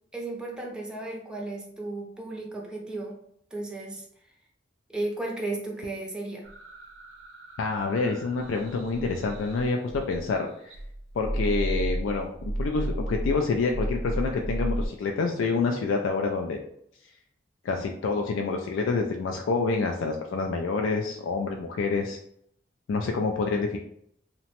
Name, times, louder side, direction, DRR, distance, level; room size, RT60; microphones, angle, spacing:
voice 1, 0.1-3.2 3.5-4.1 4.9-6.5, right 2 dB, 5° right, -1 dB, 0.4 m, -34 dB
sound 1, 6.4-10.3 10.7-14.9, right 1 dB, 80° right, 0.5 m, -33 dB
voice 2, 7.6-10.7 11.1-16.6 17.6-22.2 22.9-23.8, left 4 dB, 90° left, 2 dB, 0.3 m, -27 dB
2.8 x 2.1 x 2.9 m, 0.69 s
head